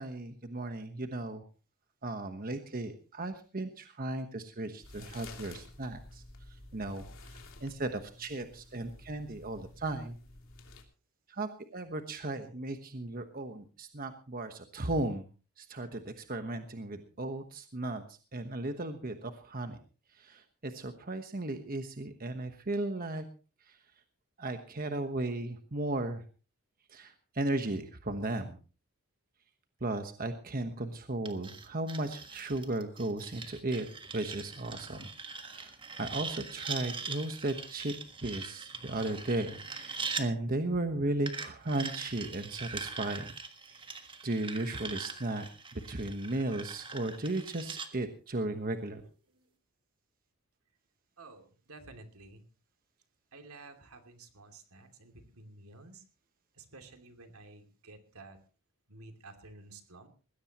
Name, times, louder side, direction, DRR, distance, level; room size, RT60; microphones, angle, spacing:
voice 1, 0.0-1.4 2.0-10.2 11.3-15.3 15.6-19.8 20.1-23.2 23.6-23.8 24.4-26.2 26.9-28.6 29.8-33.9 34.1-38.0 38.2-43.3 43.7-43.8 44.2-45.5 45.7-49.0, right 2 dB, 40° right, 7 dB, 1.2 m, -36 dB
sound 1, 4.8-10.8, left 2 dB, 65° left, 3.0 m, -51 dB
sound 2, 31.2-40.3 41.3-47.9, right 4 dB, 20° right, 1.5 m, -42 dB
voice 2, 51.2-52.4 53.3-56.0 56.5-58.4 58.9-60.1, right 3 dB, 80° right, 6 dB, 2.7 m, -52 dB
20.5 x 16.0 x 3.0 m, 0.35 s
head